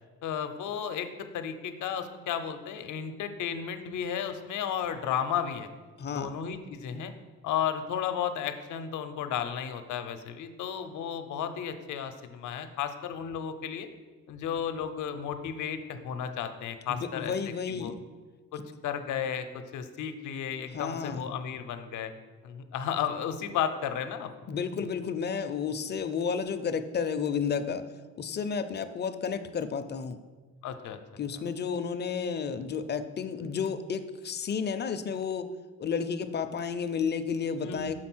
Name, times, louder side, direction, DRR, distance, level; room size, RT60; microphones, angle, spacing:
voice 1, 0.2-5.7 6.1-7.1 7.4-13.9 14.3-17.4 17.7-17.9 18.5-22.1 22.4-24.3 30.6-31.0 31.3-31.4 37.6-37.9, left 8 dB, 75° left, 9 dB, 0.7 m, -33 dB
voice 2, 6.0-6.3 16.9-18.0 18.6-18.7 20.7-21.3 24.5-27.8 28.2-30.2 31.2-35.5 35.8-37.9, left 6 dB, 35° left, 10 dB, 0.5 m, -32 dB
6.4 x 4.0 x 6.1 m, 1.4 s
cardioid pair, 90°, 30 cm